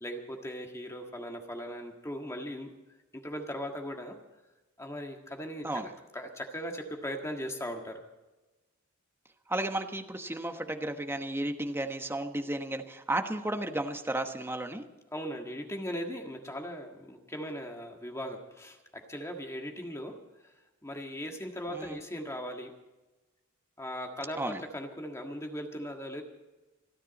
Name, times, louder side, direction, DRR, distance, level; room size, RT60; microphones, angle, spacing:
voice 1, 0.0-2.7 3.1-4.2 4.8-8.0 15.1-20.5 20.8-22.7 23.8-26.2, equal, 15° left, 3 dB, 1.7 m, -39 dB
voice 2, 9.5-14.8 21.7-22.0 24.4-24.6, right 1 dB, 10° right, 5 dB, 1.1 m, -33 dB
27.5 x 10.0 x 4.2 m, 1.1 s
head